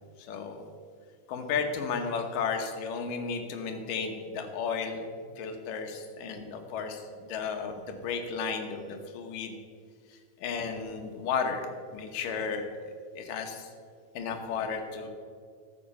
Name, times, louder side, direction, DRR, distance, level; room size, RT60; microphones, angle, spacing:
voice 1, 0.3-0.6 1.3-5.0 5.4-9.6 10.1-12.7 13.1-13.7 14.1-15.1, left 5 dB, 80° left, 5 dB, 2.7 m, -33 dB
13.5 x 8.0 x 5.6 m, 2.1 s
omnidirectional pair, 3.8 m